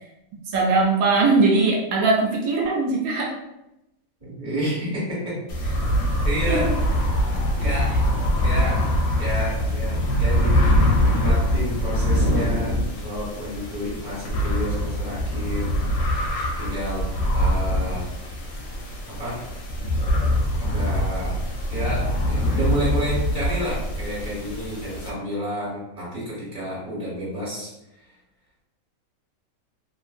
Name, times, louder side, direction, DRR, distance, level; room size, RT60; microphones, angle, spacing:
voice 1, 0.5-3.3 6.5-6.8, right 3 dB, 85° right, -1 dB, 1.0 m, -20 dB
voice 2, 4.2-5.8 6.2-6.7 7.6-8.0 8.4-8.8 9.2-15.7 16.0-16.2 16.6-17.1 17.3-18.1 19.1-19.4 20.6-21.3 21.7-27.7, equal, 25° right, -8 dB, 1.5 m, -30 dB
sound 1, 5.5-25.1, equal, 85° left, 1.1 m, -23 dB
2.8 x 2.5 x 2.4 m, 0.89 s
omnidirectional pair, 1.5 m